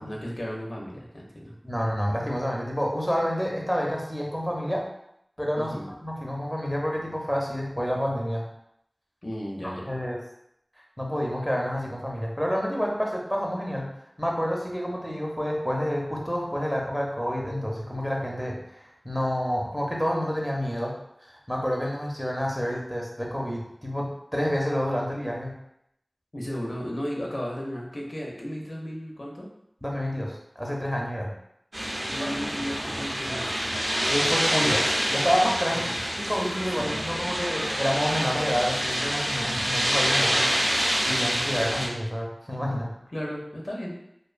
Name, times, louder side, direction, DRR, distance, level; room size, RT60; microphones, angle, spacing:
voice 1, 0.0-1.6 5.5-5.9 9.2-9.9 26.3-29.5 32.1-33.5 35.7-36.0 36.7-37.0 43.1-43.9, equal, 75° left, -2 dB, 0.5 m, -35 dB
voice 2, 1.6-4.8 5.4-5.8 6.0-8.5 9.6-10.2 11.0-13.9 14.2-20.9 21.2-25.5 29.8-31.3 34.0-34.8 35.1-35.9 36.2-40.7 41.0-43.0, equal, ahead, -2 dB, 0.5 m, -28 dB
sound 1, 31.7-41.9, equal, 50° right, 0.6 m, -27 dB
2.4 x 2.2 x 2.4 m, 0.76 s
wide cardioid pair, 40°, 0 cm